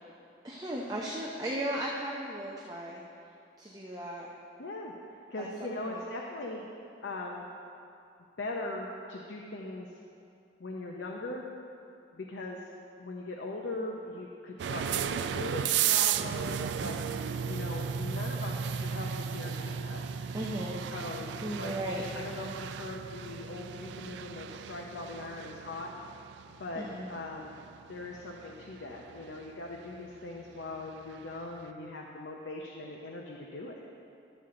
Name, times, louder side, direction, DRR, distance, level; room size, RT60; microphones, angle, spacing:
voice 1, 0.4-3.0 3.6-4.3 5.4-6.0 20.3-20.8 21.4-22.0 26.8-27.1, right 1 dB, 20° right, -3 dB, 0.6 m, -36 dB
voice 2, 4.6-4.9 5.3-6.7 7.0-7.5 8.4-9.9 10.6-11.5 12.1-12.6 13.0-17.0 17.5-20.2 20.9-21.7 22.1-25.9 26.5-27.6 27.9-33.7, left 2 dB, 80° left, -1 dB, 0.7 m, -40 dB
sound 1, 14.6-31.4, right 8 dB, 75° right, 0.3 m, -35 dB
12.5 x 7.1 x 3.8 m, 2.6 s
head